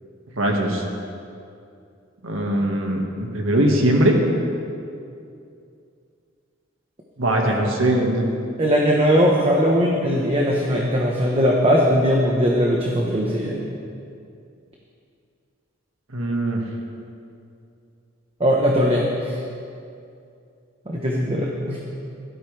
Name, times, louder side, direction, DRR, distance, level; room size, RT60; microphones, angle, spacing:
voice 1, 0.4-0.8 2.2-4.2 7.2-8.3 16.1-16.6, right 1 dB, 85° right, 1 dB, 1.8 m, -21 dB
voice 2, 8.6-13.6 18.4-19.4 20.9-21.8, equal, 30° right, -2 dB, 1.1 m, -19 dB
16.5 x 13.0 x 3.4 m, 2.5 s
head